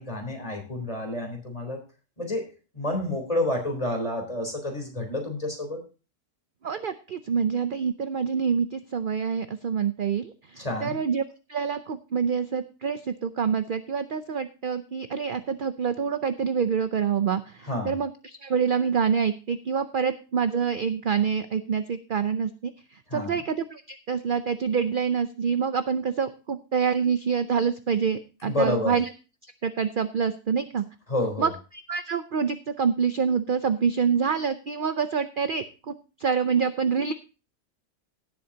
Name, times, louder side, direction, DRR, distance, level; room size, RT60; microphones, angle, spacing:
voice 1, 0.0-1.8 2.2-2.5 2.7-5.8 10.6-11.0 17.6-17.9 23.1-23.4 28.4-29.0 31.1-31.5, left 1 dB, 25° left, 3 dB, 3.7 m, -29 dB
voice 2, 6.6-11.2 11.5-29.1 29.6-30.8 31.4-37.1, right 6 dB, 55° right, 11 dB, 0.6 m, -26 dB
17.0 x 7.9 x 2.8 m, 0.33 s
omnidirectional pair, 1.6 m